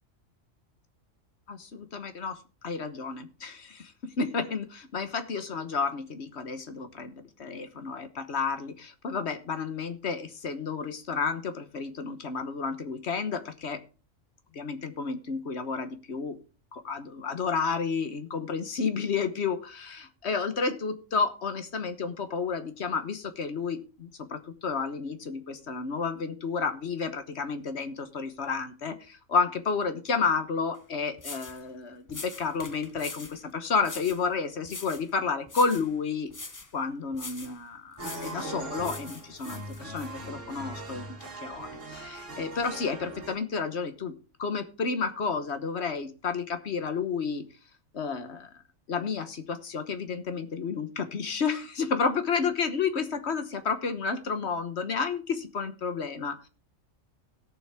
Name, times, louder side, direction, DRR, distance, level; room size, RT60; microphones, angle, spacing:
voice 1, 1.5-13.8 14.5-16.4 16.7-36.3 36.7-44.1 44.4-47.4 47.9-48.5 48.9-56.5, left 5 dB, 60° left, 9 dB, 1.4 m, -31 dB
sound 1, 30.7-30.8 31.2-31.6 32.1-33.4 33.8-34.2 34.6-35.1 35.5-35.9 36.3-36.7 37.1-37.6 38.0-38.4 38.8-40.1, left 3 dB, 20° left, 0.5 m, -42 dB
sound 2, 38.0-43.3, right 2 dB, 65° right, 2.5 m, -40 dB
17.5 x 7.0 x 3.5 m, 0.35 s
omnidirectional pair, 1.3 m